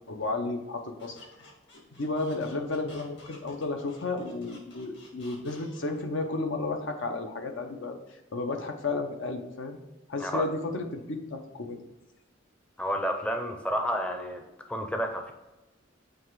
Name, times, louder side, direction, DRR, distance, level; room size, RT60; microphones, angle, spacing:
voice 1, 0.1-1.2 1.9-8.0 8.3-9.8 10.1-11.8, left 3 dB, 75° left, 5 dB, 0.8 m, -32 dB
Squeak, 1.0-6.0, left 2 dB, 60° left, 1.8 m, -53 dB
voice 2, 12.8-14.4 14.7-15.3, equal, 5° left, 3 dB, 0.5 m, -30 dB
7.2 x 3.2 x 4.7 m, 1.1 s
head